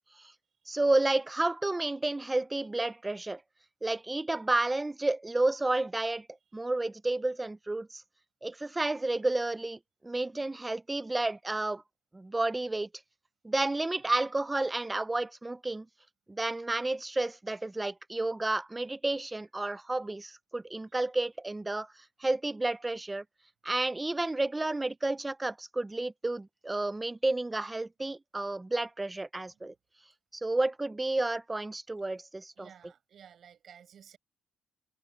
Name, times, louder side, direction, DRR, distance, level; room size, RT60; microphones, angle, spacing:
voice 1, 0.7-3.4 3.8-6.3 6.5-8.0 8.4-9.8 10.0-11.8 12.1-12.9 13.4-15.9 16.3-21.9 22.2-23.2 23.6-29.7 30.3-32.7, right 2 dB, 15° right, 0.5 m, -31 dB
voice 2, 32.6-34.2, right 8 dB, 60° right, 5.0 m, -54 dB
cardioid pair, 90°, 0 cm